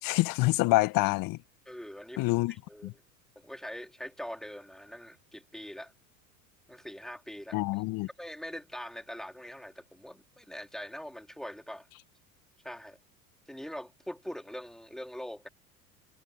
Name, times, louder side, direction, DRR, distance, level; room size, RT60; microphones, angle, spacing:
voice 1, 0.0-1.4 2.2-2.5 2.8-2.9 7.5-8.1, left 21 dB, 40° left, 1.7 m, -26 dB
voice 2, 1.7-3.0 3.4-5.9 6.7-7.8 8.2-11.9 12.6-13.0 13.5-15.5, equal, ahead, 4.1 m, -43 dB
figure-of-eight pair, 85°, 50 cm